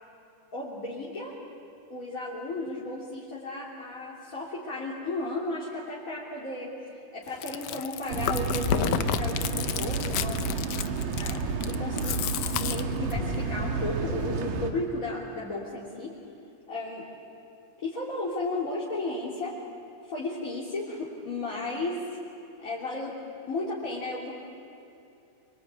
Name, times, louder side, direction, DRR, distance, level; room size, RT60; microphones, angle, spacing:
voice 1, 0.5-1.3 1.9-10.7 11.2-11.4 11.7-12.2 12.6-16.1 16.7-17.1 17.8-19.6 20.1-22.2 22.6-23.1 23.5-24.3, left 2 dB, 25° left, -7 dB, 3.3 m, -34 dB
Chewing mastication, 7.3-13.4, left 11 dB, 80° left, 1.5 m, -31 dB
sound 1, 8.1-14.7, right 5 dB, 85° right, 3.5 m, -30 dB
26.0 x 24.0 x 8.9 m, 2.8 s
omnidirectional pair, 3.8 m